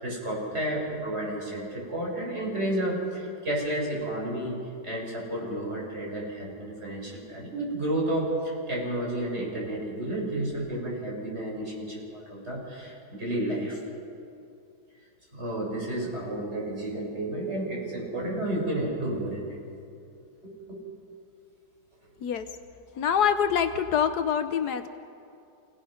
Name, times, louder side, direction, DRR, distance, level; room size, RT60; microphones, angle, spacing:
voice 1, 0.0-4.5 4.8-13.8 15.3-19.6 20.4-20.8, right 1 dB, 35° right, -3 dB, 6.2 m, -31 dB
voice 2, 22.9-24.9, left 8 dB, 70° left, 10 dB, 1.3 m, -25 dB
29.0 x 17.5 x 5.8 m, 2.6 s
omnidirectional pair, 1.8 m